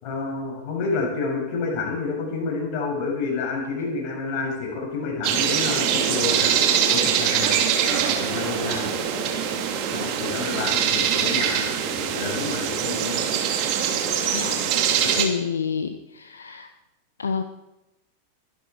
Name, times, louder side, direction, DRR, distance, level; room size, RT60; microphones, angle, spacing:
voice 1, 0.0-6.5 6.9-7.6 7.9-8.9 9.9-13.2 15.0-15.2, left 4 dB, 40° left, 0 dB, 6.8 m, -29 dB
sound 1, 5.2-15.3, right 8 dB, 40° right, 2.5 m, -23 dB
voice 2, 14.3-14.7 15.1-16.7 17.2-17.4, left 6 dB, 70° left, 9 dB, 0.9 m, -28 dB
22.5 x 12.0 x 4.7 m, 0.97 s
figure-of-eight pair, 90°, 0 cm